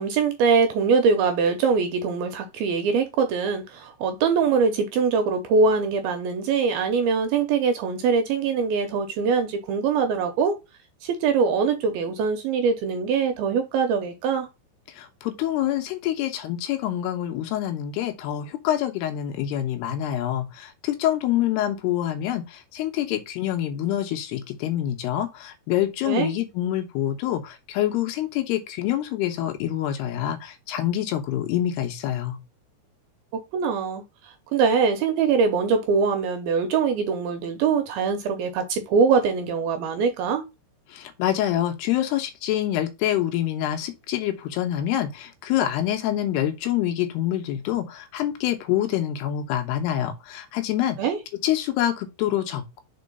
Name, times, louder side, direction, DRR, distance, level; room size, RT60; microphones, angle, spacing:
voice 1, 0.0-10.6 11.0-14.5 26.1-26.3 33.5-34.0 34.5-40.4 51.0-51.2, right 5 dB, 75° right, 2.4 m, -23 dB
voice 2, 14.9-32.4 40.9-51.0 51.4-52.8, left 12 dB, 80° left, 2.7 m, -26 dB
5.4 x 4.6 x 5.2 m
omnidirectional pair, 5.0 m